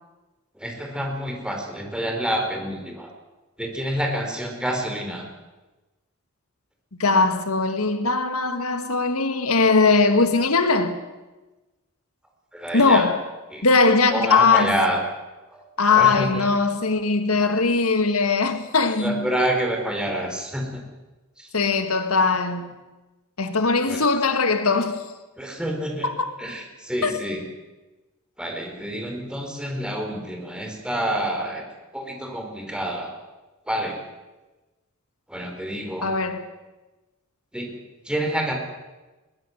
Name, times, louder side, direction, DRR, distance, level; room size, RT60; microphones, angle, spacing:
voice 1, 0.5-3.1 3.6-5.3 12.5-13.1 13.5-13.6 14.1-15.1 15.5-15.6 15.9-16.5 19.0-20.8 21.4-21.5 23.9-24.0 25.4-26.1 26.4-27.4 28.4-31.6 31.9-33.1 33.7-34.0 35.3-36.1 37.5-37.7 38.0-38.6, right 1 dB, 5° right, 4.2 m, -28 dB
voice 2, 7.0-11.0 12.7-13.2 13.6-14.8 15.8-19.3 21.5-22.8 23.4-25.0 26.0-26.3 27.0-27.1 36.0-36.4, left 4 dB, 80° left, 1.9 m, -20 dB
22.0 x 18.5 x 8.0 m
head